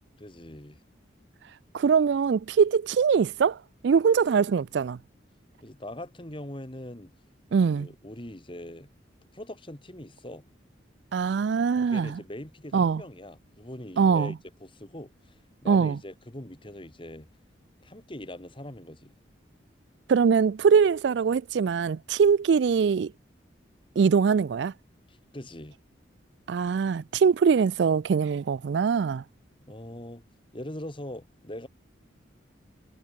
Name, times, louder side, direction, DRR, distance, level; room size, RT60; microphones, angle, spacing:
voice 1, 0.2-0.8 5.6-7.1 7.6-8.9 9.3-10.4 11.8-17.3 17.8-19.1 25.1-25.8 29.7-30.2 30.5-31.7, left 1 dB, 25° left, 2.5 m, -42 dB
voice 2, 1.7-5.0 7.5-7.9 11.1-12.2 12.7-13.0 14.0-14.3 15.7-16.0 20.1-23.1 24.0-24.7 26.5-29.2, right 6 dB, 65° right, 0.3 m, -22 dB
head